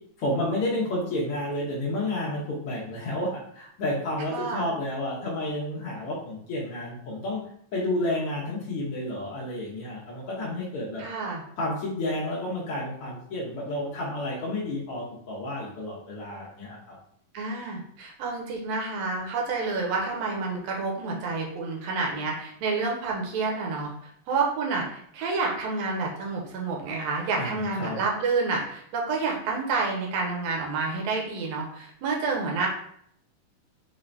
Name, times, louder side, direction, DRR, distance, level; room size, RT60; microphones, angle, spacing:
voice 1, 0.2-7.4 7.7-11.0 11.6-16.9 27.4-28.0, left 1 dB, 90° left, -5 dB, 1.2 m, -31 dB
voice 2, 4.3-4.7 11.0-11.4 17.3-23.9 24.3-32.7, right 4 dB, 75° right, -1 dB, 1.6 m, -29 dB
5.5 x 2.6 x 3.2 m, 0.67 s
omnidirectional pair, 3.8 m